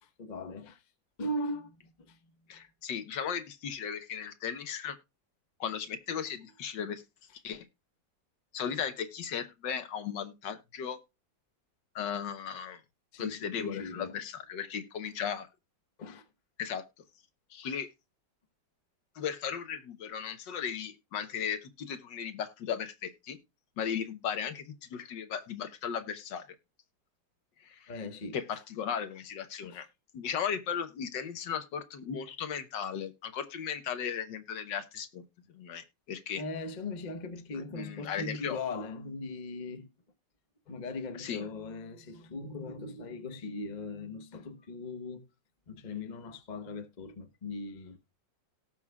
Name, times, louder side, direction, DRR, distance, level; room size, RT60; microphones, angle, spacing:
voice 1, 0.0-0.8 1.2-2.6 13.1-14.2 16.0-16.3 24.9-25.1 27.9-28.6 29.6-29.9 36.4-39.9 40.7-45.2 45.7-48.0, left 2 dB, 30° left, 0.9 m, -39 dB
voice 2, 2.5-4.9 5.6-7.0 7.4-7.6 8.5-11.0 11.9-12.8 13.2-15.5 16.6-16.8 17.5-17.9 19.1-23.4 23.8-24.6 24.9-26.4 27.6-27.9 28.3-29.9 30.1-35.2 35.5-36.4 37.7-38.6 41.2-41.4, left 7 dB, 70° left, 1.6 m, -36 dB
18.0 x 6.0 x 2.3 m
omnidirectional pair, 2.1 m